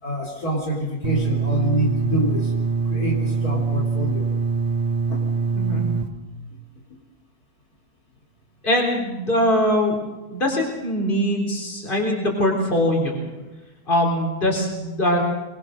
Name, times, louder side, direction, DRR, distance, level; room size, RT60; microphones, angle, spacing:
voice 1, 0.0-2.5 2.9-4.3 5.1-5.2, equal, 65° left, -2 dB, 3.7 m, -26 dB
sound 1, 1.0-6.0, right 5 dB, 30° right, 1.4 m, -23 dB
voice 2, 8.6-10.0 10.3-13.3 13.9-15.2, left 1 dB, 30° left, 1 dB, 4.1 m, -22 dB
23.5 x 21.0 x 6.5 m, 1.1 s
omnidirectional pair, 1.7 m